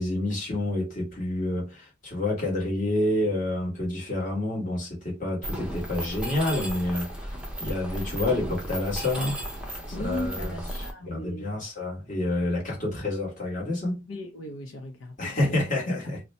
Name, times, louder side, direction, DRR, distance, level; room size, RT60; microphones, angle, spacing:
voice 1, 0.0-9.4 9.9-14.0 15.2-16.2, left 1 dB, 40° left, 1.3 m, -28 dB
Mechanisms, 5.4-10.9, right 1 dB, 5° right, 0.6 m, -34 dB
voice 2, 9.9-11.5 14.0-15.6 16.0-16.2, left 1 dB, 90° left, 0.7 m, -38 dB
2.6 x 2.2 x 4.1 m
head